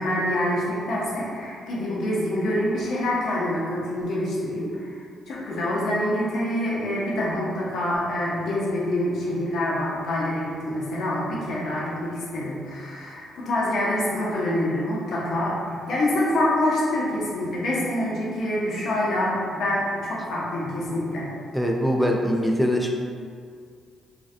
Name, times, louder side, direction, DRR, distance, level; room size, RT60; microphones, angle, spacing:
voice 1, 0.0-5.0 5.3-21.3, left 1 dB, 65° left, -6 dB, 0.5 m, -26 dB
voice 2, 21.5-22.9, equal, ahead, 0 dB, 0.3 m, -22 dB
2.5 x 2.1 x 2.5 m, 2.2 s
cardioid pair, 95°, 0 cm